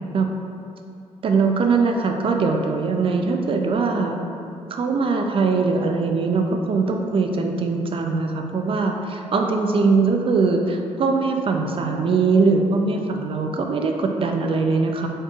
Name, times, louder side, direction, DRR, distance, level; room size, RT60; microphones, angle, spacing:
voice 1, 1.2-4.2 4.7-15.1, right 4 dB, 45° right, 4 dB, 0.4 m, -21 dB
4.3 x 3.1 x 2.4 m, 2.5 s
cardioid pair, 70°, 12 cm